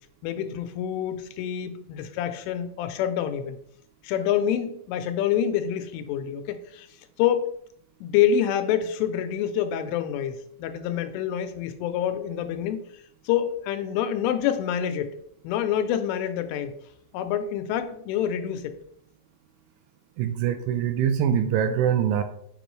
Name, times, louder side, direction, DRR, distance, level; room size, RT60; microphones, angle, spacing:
voice 1, 0.2-3.6 4.0-6.9 7.2-7.6 8.0-15.2 15.4-16.7 17.1-18.8, left 9 dB, 85° left, 9 dB, 3.0 m, -27 dB
voice 2, 20.2-22.2, right 8 dB, 85° right, 8 dB, 2.9 m, -23 dB
7.2 x 6.9 x 3.1 m, 0.70 s
omnidirectional pair, 5.7 m